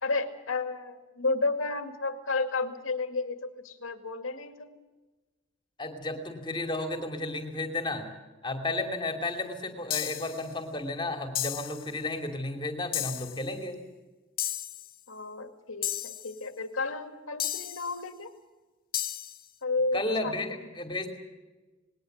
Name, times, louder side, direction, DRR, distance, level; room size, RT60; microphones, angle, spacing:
voice 1, 0.0-4.7 15.1-18.3 19.6-20.4, left 3 dB, 90° left, 8 dB, 2.2 m, -32 dB
voice 2, 5.8-8.1 8.4-13.8 19.9-21.2, left 2 dB, 25° left, 5 dB, 2.7 m, -33 dB
sound 1, 9.9-10.4 11.3-11.9 12.9-13.4 14.4-14.9 15.8-16.3 17.4-17.9 18.9-19.4, left 12 dB, 45° left, 0.9 m, -33 dB
20.5 x 18.0 x 8.0 m, 1.2 s
head